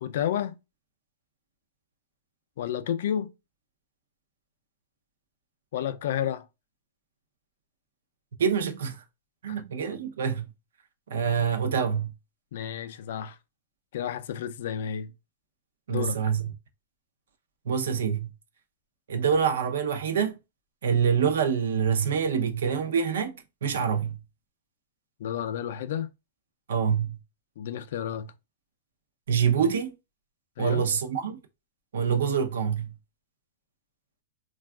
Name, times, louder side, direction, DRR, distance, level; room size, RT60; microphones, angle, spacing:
voice 1, 0.0-0.5 2.6-3.3 5.7-6.5 9.5-9.6 12.5-13.4 13.9-15.1 15.9-16.2 25.2-26.1 27.6-28.3 30.6-30.9, left 9 dB, 55° left, 0.3 m, -31 dB
voice 2, 8.4-9.0 9.4-10.5 11.1-12.1 15.9-16.4 17.7-18.3 19.1-20.4 20.8-24.2 26.7-27.2 29.3-29.9 30.6-31.4 31.9-32.9, right 7 dB, 80° right, 0.5 m, -26 dB
3.4 x 2.3 x 2.2 m
supercardioid pair, 170°, 0 cm